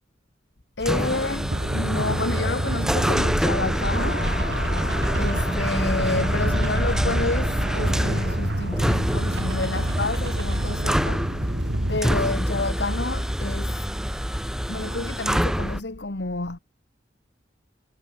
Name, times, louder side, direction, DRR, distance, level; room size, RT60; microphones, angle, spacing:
voice 1, 0.8-4.3 5.2-11.6 11.9-13.8 14.7-16.6, left 2 dB, 65° left, 1.5 m, -29 dB
sound 1, 0.8-15.8, equal, 5° right, 1.4 m, -26 dB
sound 2, 1.4-12.0, right 1 dB, 70° right, 2.3 m, -28 dB
sound 3, 3.9-11.5, left 3 dB, 50° left, 7.4 m, -39 dB
head